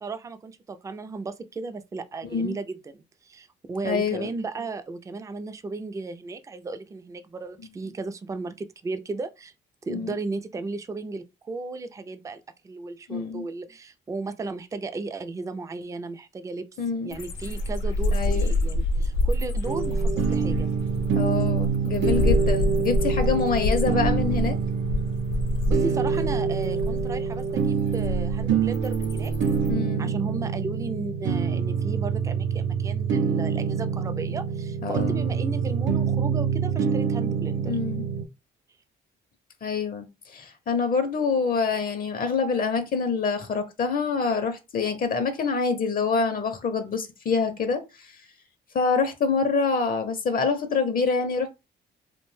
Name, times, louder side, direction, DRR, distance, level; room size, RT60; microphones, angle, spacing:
voice 1, 0.0-9.5 9.9-16.6 17.0-20.7 25.7-29.3 30.0-37.8, right 3 dB, 15° right, 0.3 m, -35 dB
voice 2, 3.8-4.3 9.9-10.1 13.1-13.4 16.8-17.1 18.1-18.5 21.1-24.6 29.7-30.1 34.8-35.2 37.6-38.0 39.6-48.2 48.7-51.5, left 4 dB, 45° left, 0.5 m, -26 dB
sound 1, 17.1-29.7, left 1 dB, 80° left, 0.7 m, -27 dB
sound 2, 19.7-38.3, right 6 dB, 75° right, 0.5 m, -26 dB
2.5 x 2.1 x 3.1 m
cardioid pair, 90°, 20 cm